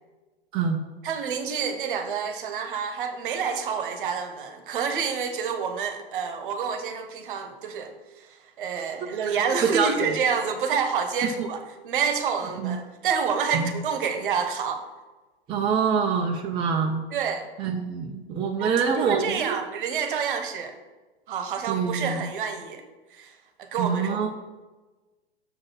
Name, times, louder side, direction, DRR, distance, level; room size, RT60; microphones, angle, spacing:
voice 1, 1.0-14.8 17.1-17.5 18.6-20.7 21.3-22.8 23.1-24.2, right 6 dB, 50° right, 7 dB, 1.1 m, -28 dB
voice 2, 9.6-9.9 11.2-11.3 12.6-12.8 13.5-13.8 15.5-17.0 17.6-19.6 21.7-22.2 23.8-24.3, right 6 dB, 15° right, 3 dB, 0.5 m, -25 dB
6.8 x 5.2 x 5.8 m, 1.2 s
figure-of-eight pair, 100°, 32 cm